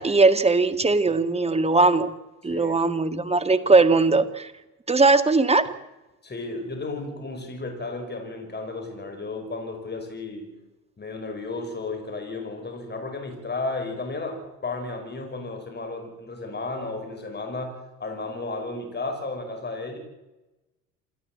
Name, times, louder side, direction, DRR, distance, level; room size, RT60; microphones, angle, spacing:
voice 1, 0.0-2.1 2.4-4.5 4.9-5.7, right 3 dB, 15° right, 10 dB, 1.9 m, -19 dB
voice 2, 6.2-10.5 11.0-20.0, left 3 dB, 20° left, 4 dB, 5.8 m, -33 dB
28.0 x 12.5 x 7.6 m, 1.0 s
hypercardioid pair, 70°, 48 cm